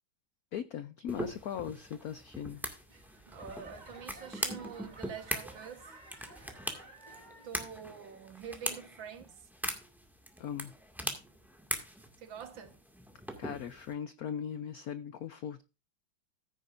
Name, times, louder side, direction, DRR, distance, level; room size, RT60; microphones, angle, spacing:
voice 1, 0.5-2.7 10.4-10.7 13.4-15.6, left 9 dB, 80° left, 0.8 m, -39 dB
sound 1, 1.1-13.9, equal, ahead, 1.7 m, -41 dB
Laughter / Clapping / Crowd, 2.9-7.7 8.0-8.5 9.1-9.2, right 2 dB, 20° right, 2.0 m, -54 dB
voice 2, 3.3-5.9 7.4-9.5 12.2-12.8, right 7 dB, 65° right, 2.0 m, -46 dB
14.5 x 9.6 x 2.6 m
omnidirectional pair, 2.4 m